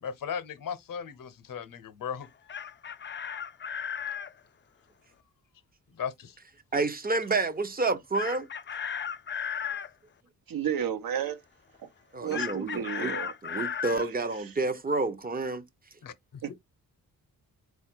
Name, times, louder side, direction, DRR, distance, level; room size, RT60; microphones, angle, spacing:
voice 1, 0.0-2.3 6.0-6.3 16.0-16.5, left 7 dB, 65° left, 0.7 m, -37 dB
Chicken rooster, 2.2-4.3 8.1-9.9 12.3-14.1, left 8 dB, 35° left, 0.4 m, -35 dB
voice 2, 6.7-8.5 12.1-13.1 13.4-15.6, right 3 dB, 25° right, 0.6 m, -29 dB
voice 3, 10.5-11.4 12.2-13.3 14.4-14.5 16.4-16.5, right 8 dB, 70° right, 0.9 m, -32 dB
4.6 x 2.3 x 4.4 m
wide cardioid pair, 130°, 36 cm